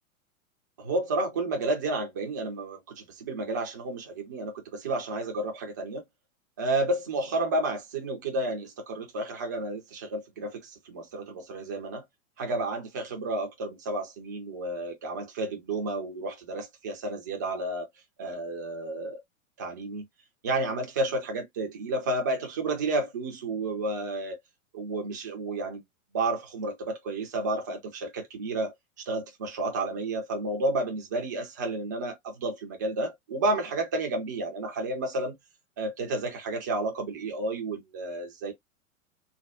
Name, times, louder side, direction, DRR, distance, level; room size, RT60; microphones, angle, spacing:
voice 1, 0.8-6.0 6.6-12.0 12.4-17.9 18.2-19.2 19.6-20.1 20.4-24.4 24.7-25.8 26.1-35.4 35.8-38.5, right 2 dB, 15° right, 0.3 m, -31 dB
3.0 x 2.1 x 2.5 m
figure-of-eight pair, 105°, 42 cm